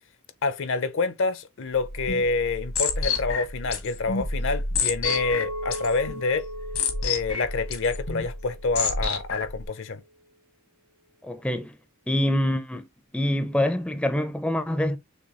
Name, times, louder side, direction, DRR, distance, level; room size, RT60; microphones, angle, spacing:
voice 1, 0.4-6.5 7.0-10.0, left 3 dB, 60° left, 0.6 m, -27 dB
sound 1, 1.7-9.7, left 4 dB, 85° left, 1.3 m, -30 dB
Chink clink, 5.0-9.3, equal, 65° right, 1.9 m, -38 dB
voice 2, 11.2-11.7 12.1-12.8 13.1-15.0, left 1 dB, 5° left, 0.4 m, -25 dB
6.4 x 2.3 x 3.0 m
head